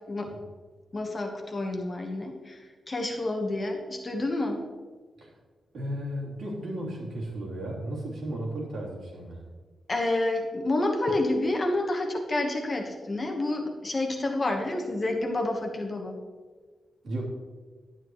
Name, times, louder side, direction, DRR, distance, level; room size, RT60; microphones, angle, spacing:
voice 1, 0.9-4.6 9.9-16.1, left 2 dB, 30° left, 2 dB, 1.3 m, -29 dB
voice 2, 5.7-9.4 17.0-17.2, right 1 dB, 70° right, -4 dB, 3.2 m, -34 dB
11.0 x 9.8 x 3.1 m, 1.4 s
wide cardioid pair, 155°, 0 cm